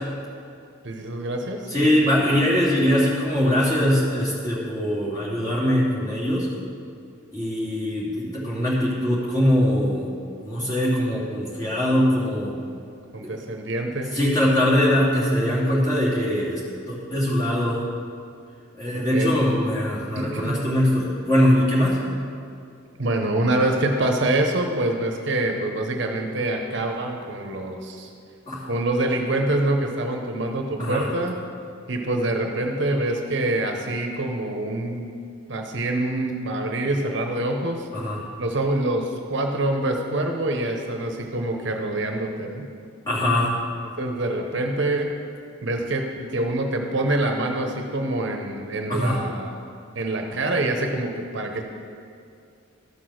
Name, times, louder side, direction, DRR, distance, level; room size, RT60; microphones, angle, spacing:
voice 1, 0.8-1.7 2.0-2.2 13.1-14.2 18.9-19.3 20.2-20.6 23.0-28.1 28.6-31.4 31.9-35.1 35.5-37.9 38.4-42.7 44.0-45.1 45.6-49.6 49.9-51.6, right 1 dB, 55° right, 3 dB, 0.9 m, -25 dB
voice 2, 1.7-6.5 7.3-10.1 10.4-12.5 14.1-16.6 16.9-17.8 18.8-22.0 28.5-28.7 30.8-31.1 37.9-38.2 43.1-43.5 48.9-49.2, equal, 20° left, -8 dB, 2.8 m, -22 dB
13.0 x 6.1 x 6.4 m, 2.4 s
head